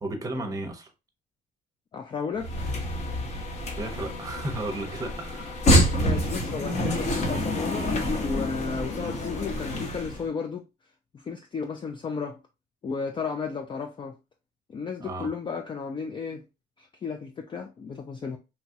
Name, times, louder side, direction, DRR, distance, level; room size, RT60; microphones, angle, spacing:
voice 1, 0.0-0.9 3.8-6.1 15.0-15.3, right 2 dB, 20° right, 0.7 m, -34 dB
voice 2, 1.9-2.7 5.9-10.6 11.1-12.4 12.8-14.1 14.7-16.4 16.8-18.4, left 5 dB, 30° left, 0.4 m, -34 dB
sound 1, 2.4-10.2, equal, 45° left, 0.9 m, -27 dB
3.0 x 2.3 x 2.7 m
cardioid pair, 110°, 17 cm